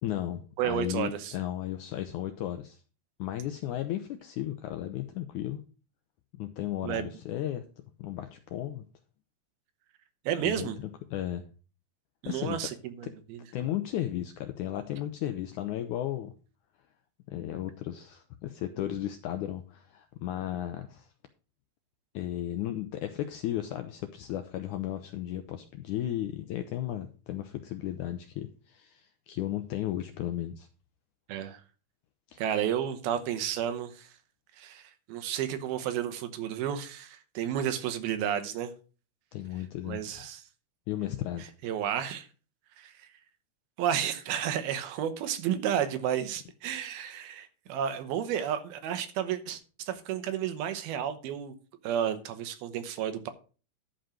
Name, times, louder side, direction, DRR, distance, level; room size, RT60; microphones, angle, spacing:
voice 1, 0.0-2.8 3.2-5.6 6.3-7.7 8.0-8.9 10.4-11.5 12.3-12.7 13.0-13.1 13.5-16.3 17.3-21.1 22.1-30.7 32.3-32.4 39.3-40.1 40.9-41.5, left 12 dB, 80° left, 1.8 m, -35 dB
voice 2, 0.6-1.3 6.8-7.1 10.3-10.8 12.2-13.4 31.3-31.6 32.4-34.1 34.6-38.7 39.9-40.4 41.6-42.3 42.8-42.9 43.8-51.5 51.8-53.3, right 9 dB, 90° right, 3.0 m, -32 dB
11.5 x 5.2 x 6.0 m
omnidirectional pair, 4.3 m